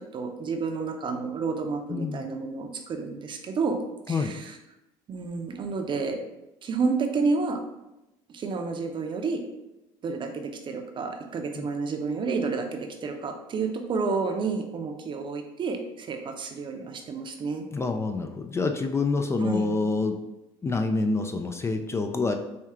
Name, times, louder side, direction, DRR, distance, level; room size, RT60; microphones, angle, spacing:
voice 1, 0.1-3.8 4.1-4.4 5.1-6.2 6.6-7.6 8.3-9.4 10.0-17.7 19.4-19.7, right 4 dB, 40° right, 5 dB, 0.6 m, -30 dB
voice 2, 1.9-2.3 4.1-4.3 11.6-11.7 17.7-20.2 20.6-22.3, left 3 dB, 20° left, 5 dB, 0.4 m, -27 dB
4.3 x 2.3 x 3.6 m, 0.93 s
supercardioid pair, 90°, 13 cm